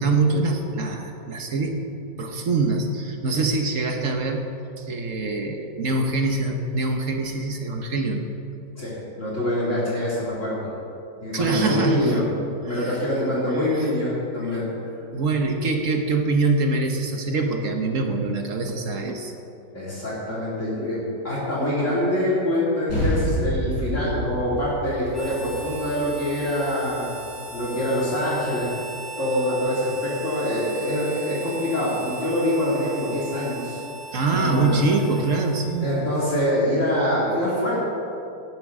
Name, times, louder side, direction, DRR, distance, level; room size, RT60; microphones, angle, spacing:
voice 1, 0.0-1.8 2.2-4.5 4.8-8.2 11.3-12.2 12.7-13.0 13.5-13.9 14.4-14.5 15.1-19.3 34.1-36.0, right 3 dB, 50° right, 4 dB, 1.3 m, -24 dB
voice 2, 8.8-10.7 11.2-12.2 12.6-14.7 19.7-27.2 27.4-28.7 29.2-33.8 34.4-34.8 35.8-37.8, left 1 dB, 45° left, -7 dB, 2.9 m, -25 dB
sound 1, 22.9-27.7, equal, 90° left, 4.1 m, -29 dB
Harmonica, 25.1-36.2, right 1 dB, ahead, 1.3 m, -38 dB
18.5 x 10.5 x 3.7 m, 2.6 s
omnidirectional pair, 1.9 m